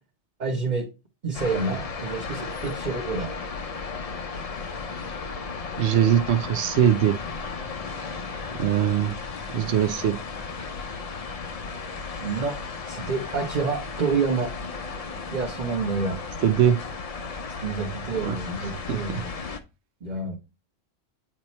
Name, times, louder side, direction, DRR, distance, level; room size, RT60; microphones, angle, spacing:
voice 1, 0.4-0.9 1.2-3.3 12.2-12.6 12.9-14.5 15.3-16.2 17.5-19.3 20.0-20.4, right 4 dB, 35° right, 1.1 m, -28 dB
sound 1, 1.3-19.6, left 4 dB, 40° left, 0.5 m, -35 dB
voice 2, 5.8-7.2 8.6-9.2 9.5-10.2 16.4-16.8 18.2-18.3 18.9-19.2, right 10 dB, 65° right, 0.9 m, -21 dB
8.6 x 3.0 x 4.2 m
omnidirectional pair, 1.3 m